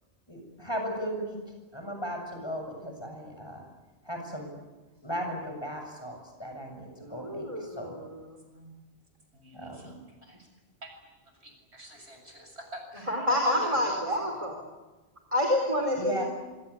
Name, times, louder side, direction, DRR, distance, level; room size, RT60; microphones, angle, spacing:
voice 1, 0.3-1.4 1.7-3.6 4.0-4.6 5.0-8.0 9.5-9.9 16.0-16.2, equal, 25° left, 3 dB, 7.4 m, -36 dB
voice 2, 7.0-8.4 13.0-14.5 15.3-16.2, left 1 dB, 30° right, 3 dB, 4.3 m, -28 dB
voice 3, 9.3-10.5 10.8-10.9 11.2-14.4, right 1 dB, 80° right, 3 dB, 7.7 m, -45 dB
26.5 x 25.0 x 8.6 m, 1.2 s
omnidirectional pair, 1.1 m